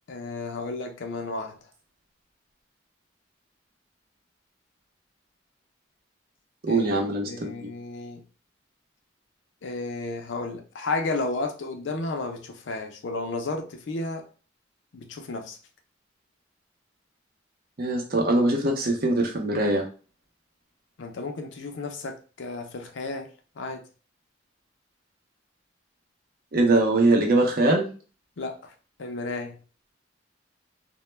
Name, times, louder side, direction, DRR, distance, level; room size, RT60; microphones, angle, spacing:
voice 1, 0.1-1.6 6.7-8.2 9.6-14.3 14.9-15.6 21.0-23.3 23.6-23.8 28.4-28.7 29.0-29.6, left 3 dB, 70° left, 5 dB, 0.5 m, -33 dB
voice 2, 6.6-7.7 17.8-19.9 26.5-27.9, right 2 dB, 50° right, 2 dB, 0.6 m, -22 dB
2.2 x 2.1 x 3.1 m, 0.36 s
head